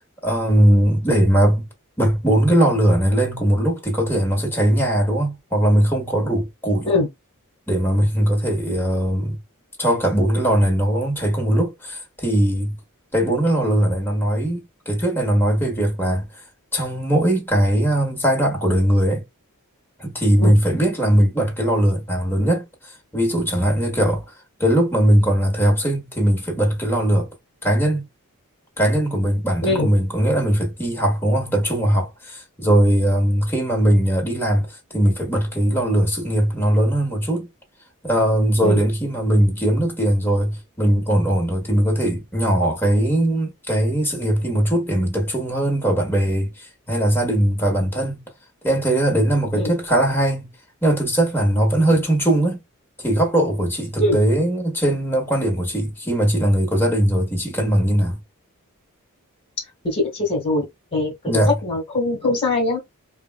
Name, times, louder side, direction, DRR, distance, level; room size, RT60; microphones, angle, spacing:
voice 1, 0.2-1.7 2.0-6.9 7.7-9.4 9.8-12.8 13.1-16.3 16.7-19.2 20.0-24.2 24.6-27.3 27.6-28.0 28.8-37.5 38.0-48.2 48.6-50.5 50.8-52.6 53.0-58.2 61.3-61.6, right 1 dB, 10° left, 1.3 m, -20 dB
voice 2, 59.8-60.6 60.9-61.1 61.5-62.9, left 2 dB, 30° left, 1.6 m, -21 dB
4.7 x 2.2 x 2.3 m
head